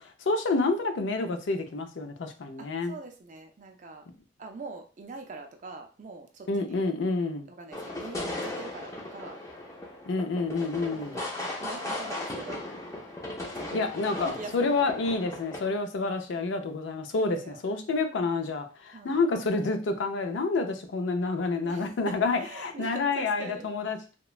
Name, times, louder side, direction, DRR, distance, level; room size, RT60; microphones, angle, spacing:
voice 1, 0.0-3.0 6.5-7.5 10.1-11.2 13.7-24.0, left 3 dB, 85° left, 6 dB, 0.4 m, -28 dB
voice 2, 2.6-4.0 4.4-6.8 7.5-9.4 11.0-12.6 13.5-13.9 14.2-15.1 17.2-17.6 18.9-19.2 21.6-23.7, right 3 dB, 45° right, 4 dB, 0.4 m, -44 dB
sound 1, 7.7-15.8, left 1 dB, 15° left, 0.5 m, -37 dB
3.0 x 2.1 x 2.4 m, 0.36 s
head